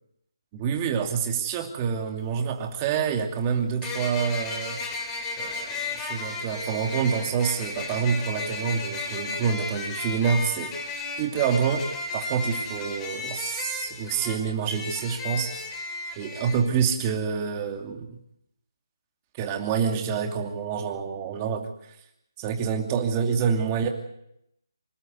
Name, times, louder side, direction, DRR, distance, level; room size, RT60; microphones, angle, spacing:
voice 1, 0.5-4.8 5.4-10.7 11.2-11.8 12.1-15.7 16.2-18.2 19.4-21.7 22.4-23.9, right 6 dB, 20° right, 4 dB, 2.6 m, -27 dB
sound 1, 2.2-2.3 3.8-16.6, left 3 dB, 15° left, 3.8 m, -34 dB
26.0 x 12.5 x 9.6 m, 0.78 s
figure-of-eight pair, 155°, 2 cm